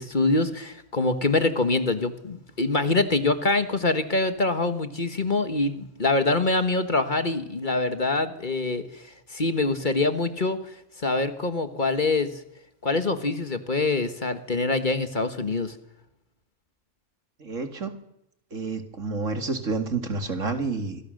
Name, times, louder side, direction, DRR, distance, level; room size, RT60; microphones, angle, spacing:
voice 1, 0.0-10.6 11.0-12.3 12.8-15.7, left 3 dB, 40° left, 9 dB, 1.5 m, -25 dB
voice 2, 17.4-17.9 18.5-21.0, right 4 dB, 70° right, 6 dB, 2.7 m, -29 dB
25.5 x 23.0 x 6.6 m, 0.83 s
omnidirectional pair, 1.3 m